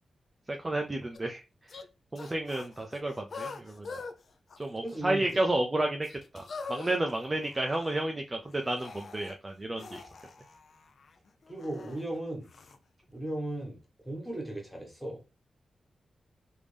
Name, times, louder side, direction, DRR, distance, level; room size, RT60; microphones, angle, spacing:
voice 1, 0.5-1.8 2.1-4.0 4.6-6.1 6.3-10.0, right 1 dB, 20° right, 3 dB, 0.4 m, -31 dB
sound 1, 1.1-1.2 1.7-1.9 2.2-4.1 4.5-5.0 5.3-5.4 6.0-8.1 8.5-9.4 9.8-12.0 12.5-12.8, left 4 dB, 55° left, 0.4 m, -44 dB
voice 2, 4.8-5.4 11.5-12.5 13.1-15.2, right 1 dB, ahead, -1 dB, 1.2 m, -37 dB
3.4 x 2.6 x 3.3 m, 0.29 s
wide cardioid pair, 140°, 0 cm